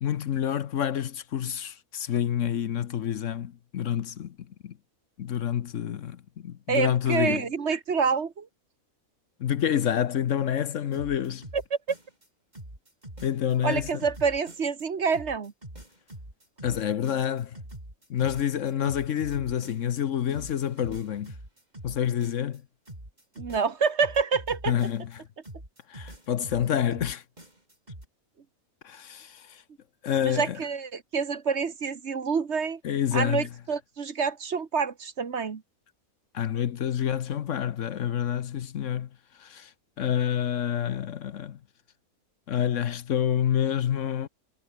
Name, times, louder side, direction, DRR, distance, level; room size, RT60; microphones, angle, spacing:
voice 1, 0.0-4.3 4.6-4.7 5.2-7.4 9.4-11.4 13.2-13.9 16.6-17.6 18.1-21.3 21.8-22.6 24.7-25.2 25.9-27.2 28.8-29.6 30.0-30.6 32.8-33.5 36.3-39.1 39.4-39.7 40.0-41.6 42.5-44.3, left 9 dB, 65° left, 1.1 m, -28 dB
voice 2, 6.7-8.5 11.5-11.6 13.6-15.5 23.4-24.8 30.2-32.8 33.1-35.6, right 5 dB, 50° right, 1.6 m, -27 dB
sound 1, 10.9-12.3 12.5-14.8 15.1-20.0 20.3-22.6 22.9-25.2 25.4-28.1, right 1 dB, 30° right, 7.0 m, -44 dB
omnidirectional pair, 1.5 m